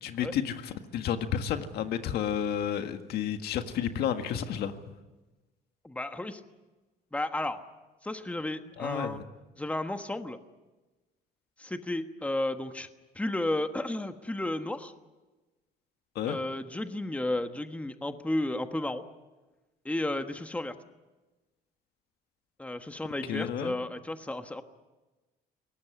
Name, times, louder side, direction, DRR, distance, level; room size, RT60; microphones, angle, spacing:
voice 1, 0.0-4.7 8.8-9.2 16.2-16.4 23.3-23.7, left 9 dB, 70° left, 8 dB, 1.7 m, -31 dB
voice 2, 5.8-6.4 7.1-7.6 8.0-9.2 9.6-10.4 11.6-12.9 13.1-14.9 16.3-19.0 19.8-20.8 22.6-24.6, left 1 dB, 10° left, 8 dB, 1.3 m, -33 dB
23.0 x 18.5 x 9.8 m, 1.2 s
cardioid pair, 110°, 17 cm